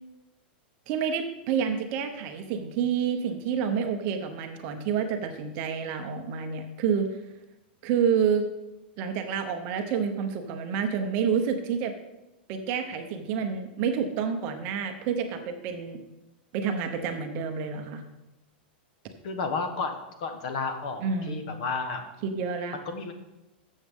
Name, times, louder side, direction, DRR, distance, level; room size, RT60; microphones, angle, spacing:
voice 1, 0.9-7.1 7.8-8.4 9.0-11.9 12.5-16.0 16.5-18.0 21.0-21.5 22.2-22.7, right 7 dB, 30° right, 6 dB, 0.8 m, -28 dB
voice 2, 19.2-22.0 22.9-23.1, left 4 dB, 45° left, 7 dB, 1.1 m, -32 dB
13.0 x 7.3 x 3.6 m, 0.96 s
supercardioid pair, 180°, 5 cm